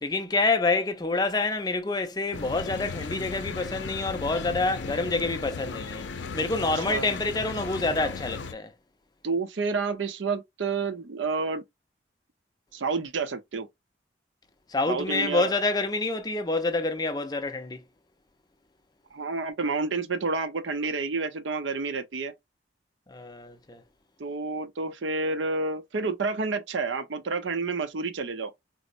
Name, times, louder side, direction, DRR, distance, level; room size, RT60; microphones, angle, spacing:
voice 1, 0.0-6.0 6.3-8.7 14.7-17.8 23.1-23.8, left 3 dB, 20° left, 0.5 m, -27 dB
sound 1, 2.3-8.5, left 5 dB, 80° left, 0.5 m, -36 dB
voice 2, 9.2-11.6 12.7-13.7 14.9-15.5 19.1-22.3 24.2-28.5, right 4 dB, 80° right, 0.6 m, -29 dB
4.2 x 2.0 x 2.4 m
head